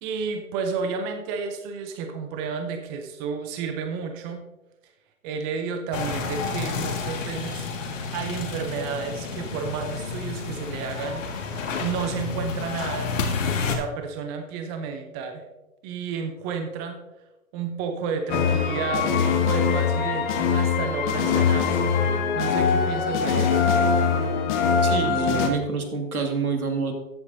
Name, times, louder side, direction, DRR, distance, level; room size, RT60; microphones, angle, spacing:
voice 1, 0.0-4.4 5.2-11.2 11.8-13.1 13.6-15.4 15.8-17.0 17.5-21.9 22.3-23.8, right 5 dB, 15° right, 6 dB, 0.6 m, -31 dB
sound 1, 5.9-13.8, left 5 dB, 60° left, 2.0 m, -30 dB
sound 2, 18.3-25.5, left 6 dB, 35° left, 1.3 m, -22 dB
voice 2, 24.8-26.9, right 4 dB, 85° right, 4 dB, 2.2 m, -27 dB
14.0 x 8.3 x 2.7 m, 1.0 s
hypercardioid pair, 130°, 42 cm